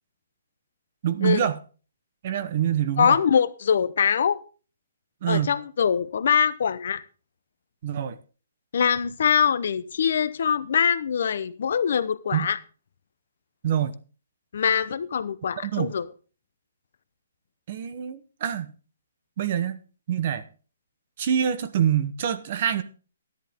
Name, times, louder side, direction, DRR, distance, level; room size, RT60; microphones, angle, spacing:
voice 1, 1.0-1.6 2.2-3.2 5.2-5.5 7.8-8.2 12.3-12.5 13.6-14.0 15.6-15.9 17.7-18.7 19.4-19.8 20.1-20.4 21.2-22.8, right 9 dB, 35° right, 0.9 m, -25 dB
voice 2, 3.0-4.4 5.3-7.0 8.7-12.6 14.5-16.1, left 7 dB, 55° left, 0.8 m, -23 dB
13.0 x 11.0 x 3.6 m
hypercardioid pair, 170°, 0 cm